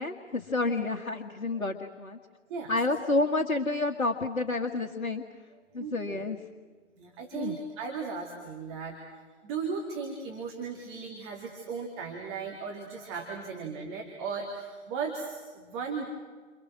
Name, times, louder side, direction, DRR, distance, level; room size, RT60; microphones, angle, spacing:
voice 1, 0.0-2.2 2.7-5.2 5.7-6.4 7.3-7.6, left 2 dB, 65° left, 3 dB, 2.0 m, -29 dB
voice 2, 5.8-6.2 6.9-9.0 9.4-16.0, right 5 dB, 20° right, 0 dB, 2.5 m, -36 dB
30.0 x 28.0 x 6.3 m, 1.4 s
figure-of-eight pair, 140°, 41 cm